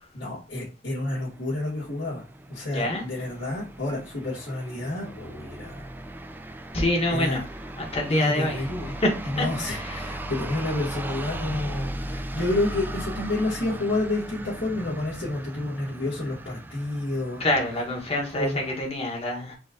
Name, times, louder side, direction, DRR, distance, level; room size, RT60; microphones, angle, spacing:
voice 1, 0.1-2.2 2.5-5.9 7.1-7.4 8.1-9.0 9.2-17.4 18.3-18.8, left 2 dB, 75° left, 2.2 m, -29 dB
sound 1, 1.0-18.8, right 1 dB, 10° right, 0.4 m, -38 dB
voice 2, 2.7-3.0 6.7-7.4 7.8-8.6 9.0-9.1 9.4-9.9 17.4-19.5, left 1 dB, 35° left, 1.4 m, -26 dB
5.0 x 2.6 x 3.9 m
head